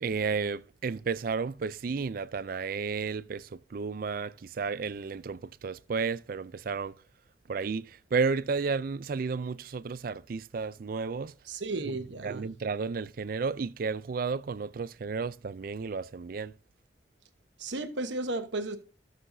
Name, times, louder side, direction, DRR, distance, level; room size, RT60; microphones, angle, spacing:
voice 1, 0.0-6.9 7.5-11.3 12.2-16.5, right 5 dB, 50° right, 0.4 m, -32 dB
voice 2, 11.4-12.4 17.6-18.8, right 2 dB, 85° right, 1.1 m, -34 dB
16.5 x 6.6 x 2.7 m
head